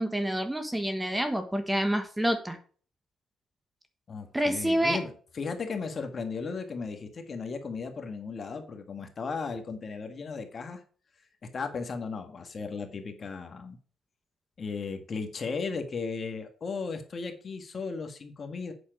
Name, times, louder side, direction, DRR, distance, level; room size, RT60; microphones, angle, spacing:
voice 1, 0.0-2.6 4.3-5.0, equal, 10° right, 7 dB, 1.3 m, -27 dB
voice 2, 4.1-10.8 11.5-13.8 14.6-18.7, left 4 dB, 45° left, 6 dB, 1.8 m, -36 dB
8.6 x 6.4 x 5.1 m, 0.42 s
cardioid pair, 90°, 0 cm